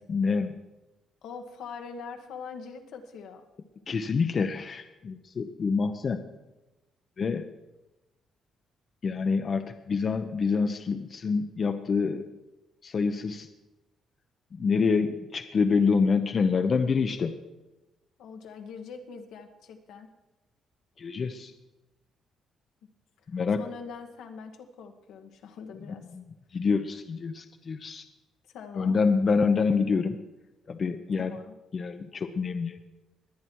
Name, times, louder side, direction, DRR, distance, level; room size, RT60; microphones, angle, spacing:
voice 1, 0.1-0.6 3.9-6.2 7.2-7.5 9.0-12.3 12.8-13.5 14.5-17.4 21.0-21.5 23.3-23.7 26.2-26.3 26.5-28.0 28.8-30.2 30.7-31.4 31.7-32.8, left 5 dB, 45° left, 7 dB, 0.8 m, -26 dB
voice 2, 1.2-3.5 18.2-20.1 23.2-26.1 28.4-29.0 31.2-31.5, left 5 dB, 85° left, 4 dB, 1.6 m, -43 dB
22.0 x 8.6 x 4.7 m, 1.0 s
cardioid pair, 90°, 0 cm